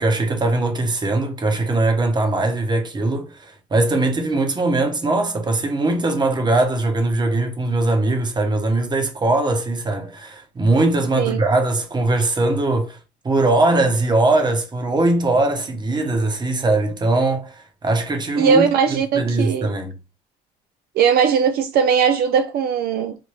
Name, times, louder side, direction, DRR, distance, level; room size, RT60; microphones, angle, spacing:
voice 1, 0.0-13.0 13.2-18.7 19.1-19.9, right 2 dB, 25° right, 1.0 m, -20 dB
voice 2, 18.4-19.7 21.0-23.2, right 6 dB, 65° right, 0.5 m, -19 dB
5.8 x 2.2 x 3.3 m
cardioid pair, 110°, 17 cm